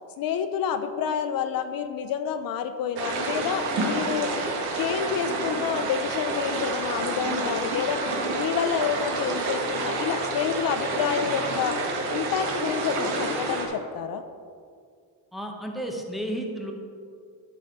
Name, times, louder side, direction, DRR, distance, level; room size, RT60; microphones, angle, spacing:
voice 1, 0.2-4.3 4.7-8.0 8.3-11.8 12.1-14.2, left 8 dB, 60° left, 9 dB, 0.5 m, -28 dB
sound 1, 3.0-13.7, right 2 dB, 80° right, 1.5 m, -29 dB
voice 2, 15.3-16.7, equal, ahead, 1 dB, 0.8 m, -32 dB
12.0 x 4.2 x 4.8 m, 2.2 s
cardioid pair, 155°, 39 cm